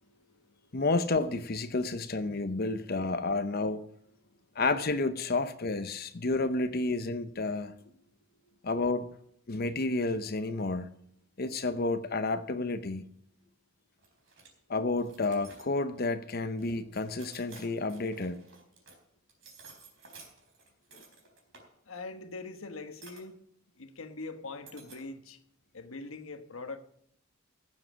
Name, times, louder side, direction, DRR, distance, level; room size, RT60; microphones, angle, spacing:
voice 1, 0.0-0.8 4.2-4.4 6.2-6.3 8.3-8.6 21.8-23.4 23.8-25.4 25.7-26.8, left 3 dB, 80° left, 1.2 m, -43 dB
voice 2, 0.7-3.8 4.6-7.7 8.6-9.1 9.5-10.9 11.4-13.0 14.7-18.4 20.9-21.0, left 3 dB, 45° left, 0.8 m, -30 dB
sound 1, 14.0-14.5 15.0-16.0 16.6-19.0 19.3-21.7 23.0-23.2 24.7-25.1, right 4 dB, 60° right, 4.2 m, -53 dB
15.0 x 7.6 x 6.3 m
head